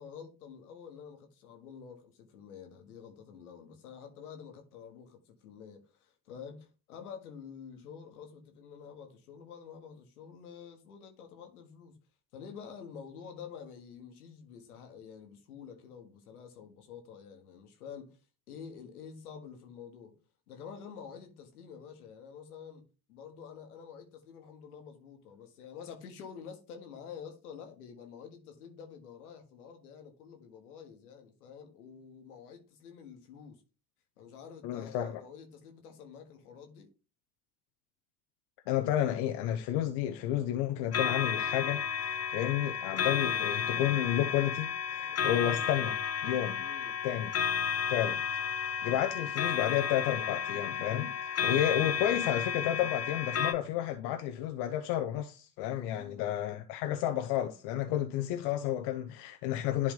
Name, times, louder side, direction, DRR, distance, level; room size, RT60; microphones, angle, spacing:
voice 1, 0.0-12.0 12.3-18.2 18.5-20.2 20.5-33.6 34.2-36.9 46.6-47.0 55.7-56.4, left 7 dB, 80° left, 1.5 m, -48 dB
voice 2, 34.6-35.2 38.7-46.6 47.0-47.3 47.9-48.2 48.6-59.9, left 11 dB, 65° left, 0.8 m, -31 dB
sound 1, 40.9-53.5, left 7 dB, 35° left, 0.8 m, -32 dB
11.0 x 3.6 x 3.7 m
hypercardioid pair, 55°, 44 cm